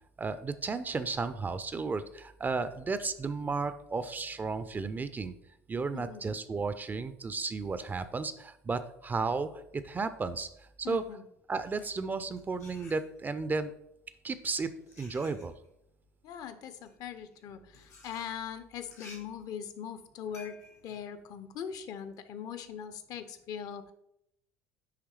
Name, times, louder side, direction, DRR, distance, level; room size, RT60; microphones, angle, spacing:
voice 1, 0.2-5.3 5.7-11.0 11.5-13.7 14.2-14.7 15.0-15.6, right 4 dB, 20° right, 12 dB, 0.4 m, -33 dB
voice 2, 5.9-6.3 10.8-11.3 16.2-23.9, left 8 dB, 50° left, 11 dB, 0.6 m, -41 dB
sound 1, 11.5-13.5 14.3-22.2, left 2 dB, 85° left, 2.0 m, -56 dB
9.7 x 3.3 x 3.2 m, 0.78 s
hypercardioid pair, 65°, 8 cm